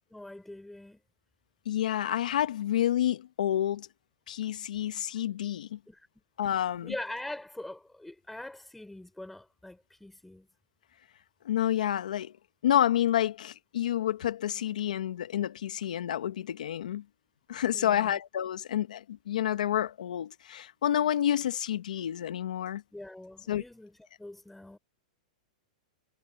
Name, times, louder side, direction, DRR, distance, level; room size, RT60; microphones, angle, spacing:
voice 1, 0.1-1.0 5.9-6.1 6.8-10.5 17.7-18.2 22.9-24.8, left 1 dB, 5° left, 6.0 m, -43 dB
voice 2, 1.6-3.9 4.3-5.8 6.4-6.9 11.4-12.3 12.6-17.0 17.5-22.8 23.5-23.6, left 11 dB, 85° left, 1.6 m, -29 dB
hypercardioid pair, 145°, 4 cm